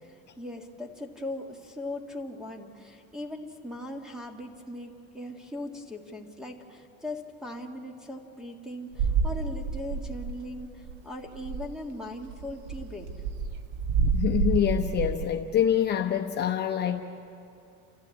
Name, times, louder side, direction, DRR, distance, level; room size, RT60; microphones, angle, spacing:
voice 1, 0.0-13.1, left 1 dB, ahead, 3 dB, 1.8 m, -39 dB
sound 1, 8.9-10.6 10.9-11.0 11.3-11.8 12.3-15.3, right 5 dB, 80° right, 1.5 m, -29 dB
voice 2, 14.1-17.0, left 9 dB, 35° left, 3 dB, 0.9 m, -26 dB
29.5 x 14.0 x 8.4 m, 2.5 s
cardioid pair, 145°, 30 cm